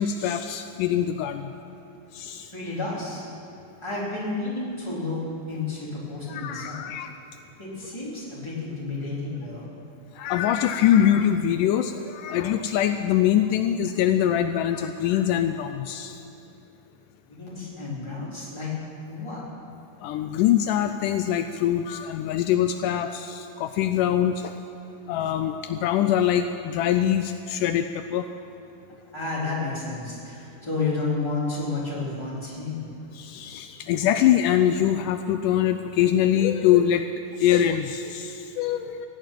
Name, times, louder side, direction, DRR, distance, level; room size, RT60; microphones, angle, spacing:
voice 1, 0.0-1.5 2.1-2.5 6.3-7.1 10.2-16.2 20.0-24.5 25.1-28.3 33.1-37.0 37.4-39.1, left 10 dB, 80° left, 8 dB, 2.1 m, -23 dB
voice 2, 2.5-3.2 3.8-6.9 7.6-9.7 17.4-18.7 19.1-19.4 29.1-32.9, left 3 dB, 10° left, -7 dB, 3.6 m, -31 dB
16.5 x 9.0 x 9.2 m, 2.8 s
omnidirectional pair, 3.8 m